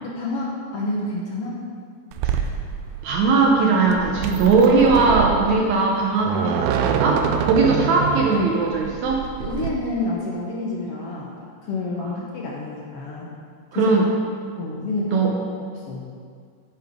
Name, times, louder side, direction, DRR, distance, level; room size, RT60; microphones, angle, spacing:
voice 1, 0.0-1.6 9.4-11.3 11.6-13.3 13.7-13.9 14.6-15.3 15.9-16.1, left 2 dB, 65° left, -3 dB, 1.5 m, -28 dB
sound 1, 2.1-9.7, right 8 dB, 90° right, 1.6 m, -26 dB
voice 2, 3.0-9.2 12.0-12.1 13.7-14.1 15.1-15.3, right 4 dB, 70° right, -1 dB, 1.9 m, -19 dB
10.0 x 9.1 x 3.6 m, 2.1 s
omnidirectional pair, 4.0 m